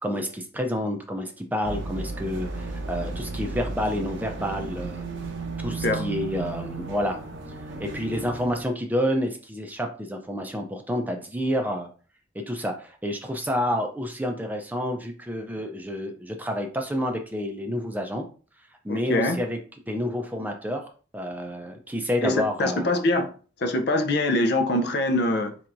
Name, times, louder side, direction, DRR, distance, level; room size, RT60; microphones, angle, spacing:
voice 1, 0.0-5.0 5.6-7.2 7.8-11.9 12.5-18.3 18.8-19.6 19.9-20.9 21.1-22.9, equal, 10° right, 0.5 m, -29 dB
sound 1, 1.6-8.6, right 3 dB, 90° right, 0.9 m, -34 dB
voice 2, 18.9-19.4 22.2-23.3 23.6-25.6, left 1 dB, 60° left, 0.6 m, -24 dB
4.5 x 3.5 x 2.6 m
head